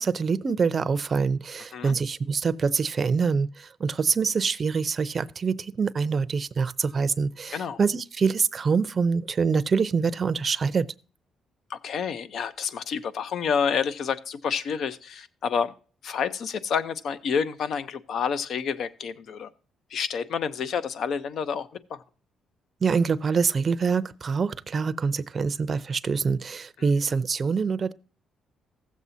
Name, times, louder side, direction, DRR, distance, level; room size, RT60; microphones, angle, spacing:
voice 1, 0.0-10.9 22.8-27.9, right 5 dB, 40° right, 0.6 m, -25 dB
voice 2, 11.7-15.7 16.0-19.5 19.9-22.0, left 6 dB, 65° left, 0.7 m, -29 dB
16.0 x 7.3 x 2.7 m
cardioid pair, 90°, 0 cm